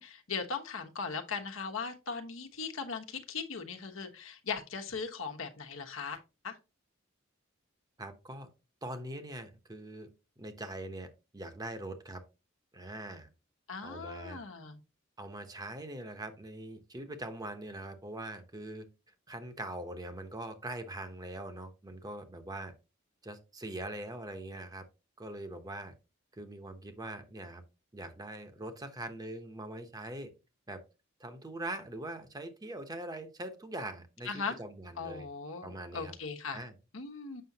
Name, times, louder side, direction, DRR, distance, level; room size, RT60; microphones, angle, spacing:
voice 1, 0.0-6.6 13.7-14.8 34.3-34.6 35.0-36.6 36.9-37.4, left 5 dB, 80° left, 4 dB, 1.2 m, -39 dB
voice 2, 8.0-8.5 8.8-10.1 10.4-12.2 12.7-13.3 13.8-14.4 15.2-18.9 19.3-22.7 23.2-24.8 25.2-25.9 26.3-27.6 27.9-30.3 30.7-30.8 31.2-35.3 35.6-36.1 36.5-36.8, right 1 dB, 20° right, 7 dB, 0.9 m, -42 dB
7.7 x 6.0 x 2.8 m, 0.28 s
head